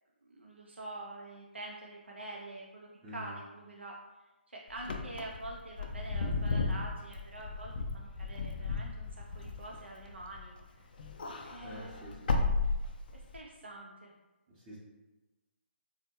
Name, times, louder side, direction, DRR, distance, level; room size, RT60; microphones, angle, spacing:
voice 1, 0.2-3.9 4.5-10.9 11.4-12.8 13.1-14.1, right 2 dB, 80° right, -1 dB, 0.4 m, -46 dB
voice 2, 3.0-3.3 11.6-12.5 14.5-14.8, equal, 20° right, -9 dB, 0.7 m, -47 dB
Wind / Car, 4.8-10.6 10.9-13.4, left 3 dB, 50° left, 0.4 m, -34 dB
3.3 x 2.1 x 2.8 m, 1.1 s
figure-of-eight pair, 145°, 6 cm